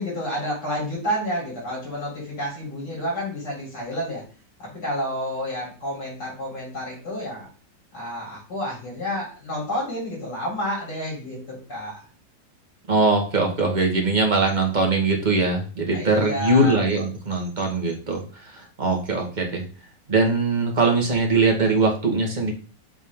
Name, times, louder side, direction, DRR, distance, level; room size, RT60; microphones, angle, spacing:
voice 1, 0.0-4.2 4.6-7.5 7.9-12.0 15.9-16.8, equal, 65° left, -5 dB, 4.2 m, -30 dB
voice 2, 12.9-19.6 20.1-22.5, right 3 dB, 30° right, 1 dB, 1.3 m, -21 dB
7.7 x 3.6 x 3.5 m, 0.37 s
omnidirectional pair, 1.9 m